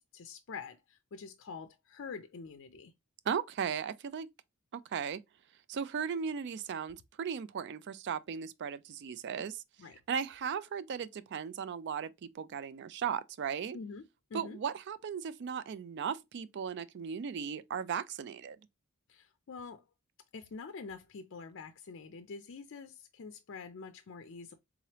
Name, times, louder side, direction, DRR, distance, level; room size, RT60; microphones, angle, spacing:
voice 1, 0.0-2.9 9.8-10.0 13.7-14.0 14.3-14.6 19.1-19.8 20.3-24.5, left 5 dB, 55° left, 0.4 m, -46 dB
voice 2, 3.3-4.3 4.7-5.2 5.7-9.6 10.1-13.8 14.3-18.6, right 7 dB, 50° right, 0.3 m, -37 dB
3.7 x 3.2 x 2.8 m
head